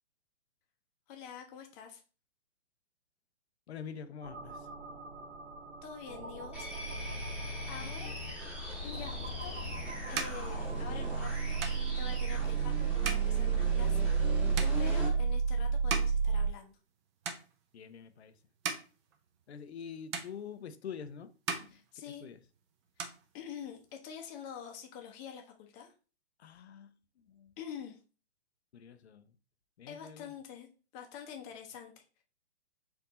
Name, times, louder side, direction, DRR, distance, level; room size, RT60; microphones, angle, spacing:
voice 1, 1.1-2.0 5.8-6.7 7.3-8.1 8.8-9.6 10.1-11.7 12.0-16.8 21.7-22.3 23.3-25.9 27.6-28.0 29.9-30.7 30.9-32.0, left 8 dB, 25° left, 0.8 m, -46 dB
voice 2, 3.7-4.7 7.8-8.2 17.7-18.4 19.5-21.3 21.6-21.8 22.1-22.4 26.4-27.5 28.7-29.4 29.8-30.3, left 7 dB, 70° left, 0.7 m, -46 dB
sound 1, 4.2-16.5, right 6 dB, 85° right, 1.2 m, -33 dB
sound 2, 6.5-15.2, left 1 dB, 5° right, 1.2 m, -40 dB
sound 3, 9.3-17.0 17.2-17.9 18.4-19.8 20.1-21.0 21.3-22.5 22.8-23.9, right 6 dB, 25° right, 0.6 m, -41 dB
4.5 x 2.7 x 4.1 m
hypercardioid pair, 135°, 34 cm